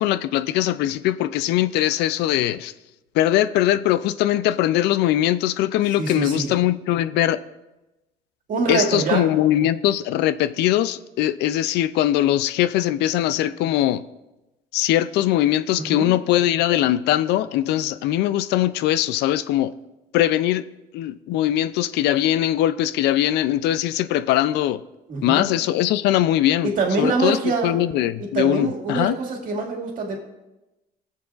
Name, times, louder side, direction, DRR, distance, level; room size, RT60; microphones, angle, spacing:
voice 1, 0.0-2.7 3.1-7.4 8.7-14.0 14.7-19.7 20.1-20.6 20.9-24.8 25.2-26.7 27.0-29.1, left 13 dB, 85° left, 15 dB, 0.4 m, -21 dB
voice 2, 6.0-6.5 8.5-9.3 15.8-16.1 25.1-25.5 26.6-27.8 28.2-30.2, right 4 dB, 55° right, 1 dB, 2.1 m, -24 dB
21.0 x 7.2 x 2.5 m, 1.0 s
cardioid pair, 110°, 17 cm